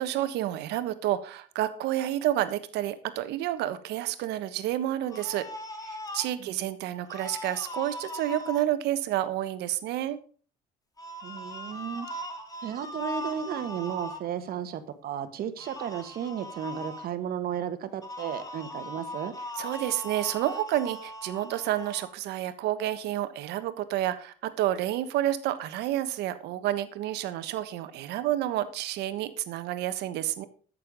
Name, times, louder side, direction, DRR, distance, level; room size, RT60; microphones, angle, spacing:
voice 1, 0.0-5.5 5.8-10.2 19.6-30.4, right 13 dB, 85° right, 11 dB, 1.3 m, -29 dB
sound 1, 5.1-6.3 7.0-8.6 11.0-14.2 15.6-17.1 18.0-22.1, left 1 dB, 20° left, 2.4 m, -39 dB
voice 2, 11.2-12.1 12.6-19.3, right 9 dB, 65° right, 10 dB, 1.5 m, -34 dB
13.5 x 6.8 x 5.3 m, 0.42 s
cardioid pair, 110°, 17 cm